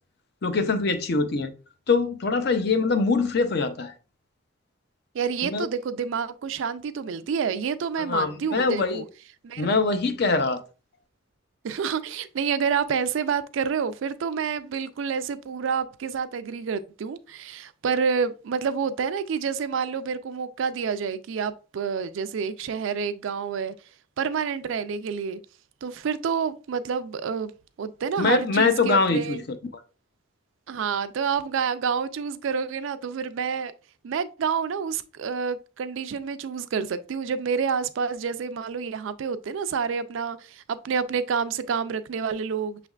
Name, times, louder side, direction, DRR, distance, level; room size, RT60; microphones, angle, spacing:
voice 1, 0.4-1.5 1.9-3.9 5.4-5.7 8.0-9.0 9.6-10.6 28.2-29.4, left 4 dB, 50° left, 0.5 m, -23 dB
voice 2, 5.1-9.1 9.4-9.7 11.6-23.7 24.2-25.4 25.8-27.5 27.8-29.4 30.7-33.7 34.0-42.8, right 6 dB, 70° right, 0.4 m, -28 dB
6.2 x 3.3 x 2.3 m
head